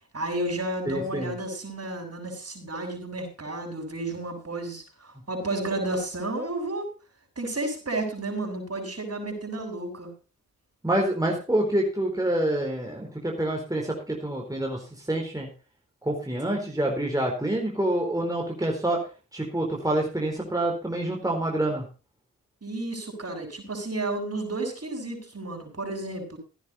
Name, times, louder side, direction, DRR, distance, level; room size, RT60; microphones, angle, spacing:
voice 1, 0.1-6.9 7.4-10.1 22.6-26.4, right 2 dB, 45° right, 3 dB, 7.4 m, -32 dB
voice 2, 0.9-1.4 10.8-15.5 16.0-19.0 19.3-21.9, right 1 dB, 10° right, 0 dB, 4.3 m, -27 dB
15.5 x 9.8 x 4.3 m, 0.34 s
cardioid pair, 50°, 34 cm